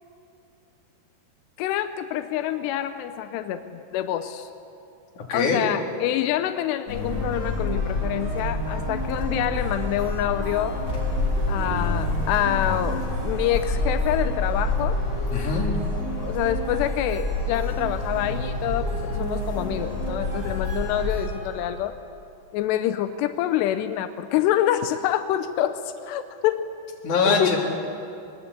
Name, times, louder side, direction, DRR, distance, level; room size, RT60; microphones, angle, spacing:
voice 1, 1.6-4.5 5.3-10.8 11.5-15.0 16.2-22.0 22.5-26.7 27.3-27.6, left 12 dB, 90° left, 9 dB, 2.9 m, -26 dB
voice 2, 5.3-5.6 15.3-15.7 27.0-27.6, left 4 dB, 50° left, 0 dB, 4.2 m, -22 dB
sound 1, 6.9-21.2, left 2 dB, 30° left, 3.0 m, -28 dB
sound 2, 7.1-21.8, right 1 dB, 60° right, 9.6 m, -36 dB
21.5 x 21.0 x 8.4 m, 2.8 s
omnidirectional pair, 4.7 m